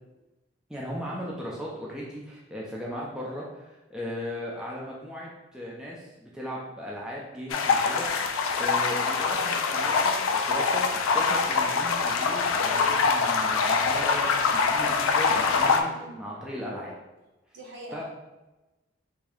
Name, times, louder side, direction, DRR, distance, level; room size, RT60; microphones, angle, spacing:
voice 1, 0.7-15.9 16.2-16.9 17.9-18.0, equal, 5° right, -5 dB, 0.4 m, -37 dB
sound 1, 7.5-15.8, left 5 dB, 90° left, 0.4 m, -24 dB
voice 2, 17.5-18.0, right 1 dB, 65° right, -2 dB, 0.9 m, -42 dB
3.5 x 2.7 x 3.4 m, 1.1 s
head